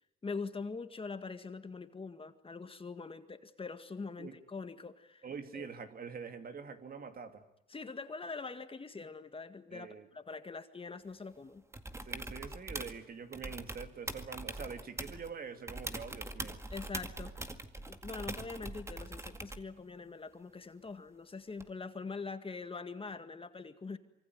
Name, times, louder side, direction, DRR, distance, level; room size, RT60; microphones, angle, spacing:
voice 1, 0.2-5.3 5.6-5.7 7.7-11.6 16.7-17.5 17.9-24.0, left 4 dB, 25° left, 9 dB, 2.0 m, -43 dB
voice 2, 5.2-7.4 9.7-10.1 12.0-16.6, right 6 dB, 50° right, 8 dB, 2.6 m, -45 dB
sound 1, 11.7-13.0 13.3-15.3 15.7-19.7 21.6-21.7, right 2 dB, 15° right, 2.0 m, -42 dB
25.5 x 24.0 x 9.5 m, 0.81 s
cardioid pair, 90°, 20 cm